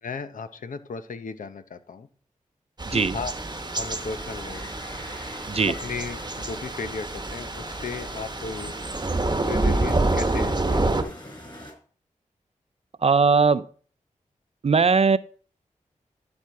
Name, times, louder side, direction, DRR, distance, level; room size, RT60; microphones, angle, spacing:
voice 1, 0.0-2.1 2.9-3.3 3.7-4.7 5.7-8.8 9.4-11.3, left 5 dB, 75° left, 10 dB, 0.8 m, -35 dB
Thunder / Rain, 2.8-11.0, right 2 dB, 30° right, 1.1 m, -27 dB
sound 1, 3.1-11.7, left 1 dB, 35° left, 4.5 m, -43 dB
voice 2, 13.0-13.7 14.6-15.2, right 5 dB, 50° right, 17 dB, 0.5 m, -19 dB
12.0 x 4.3 x 4.8 m, 0.43 s
cardioid pair, 45°, 14 cm